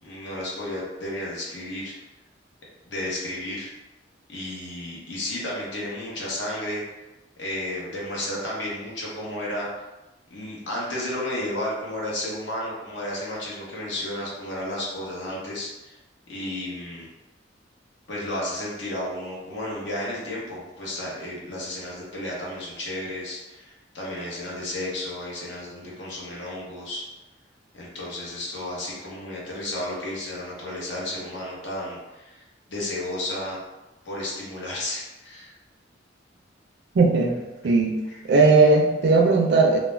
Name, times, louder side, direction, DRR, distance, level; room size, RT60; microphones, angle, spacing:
voice 1, 0.0-1.9 2.8-3.7 4.3-6.8 7.4-9.7 10.3-16.0 16.3-17.1 18.1-27.0 27.7-32.4 32.7-33.6 34.0-35.5 38.1-38.2, left 1 dB, 70° left, -5 dB, 0.8 m, -32 dB
voice 2, 36.9-38.0 38.3-39.8, right 3 dB, 60° right, 2 dB, 0.4 m, -18 dB
2.3 x 2.1 x 3.1 m, 1.1 s
head